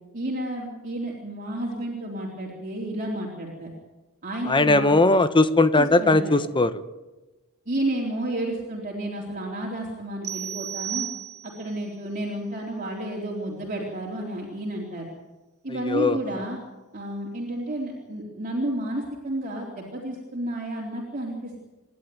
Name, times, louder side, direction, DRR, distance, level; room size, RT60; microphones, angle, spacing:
voice 1, 0.1-3.7 4.2-5.0 5.8-6.4 7.7-11.1 11.4-15.1 15.6-16.6 16.9-21.6, right 1 dB, 40° right, -3 dB, 3.9 m, -31 dB
voice 2, 4.5-6.7 15.9-16.2, left 2 dB, 25° left, 12 dB, 1.2 m, -19 dB
sound 1, 10.2-11.8, right 11 dB, 80° right, 1.4 m, -34 dB
28.0 x 12.0 x 9.4 m, 1.1 s
head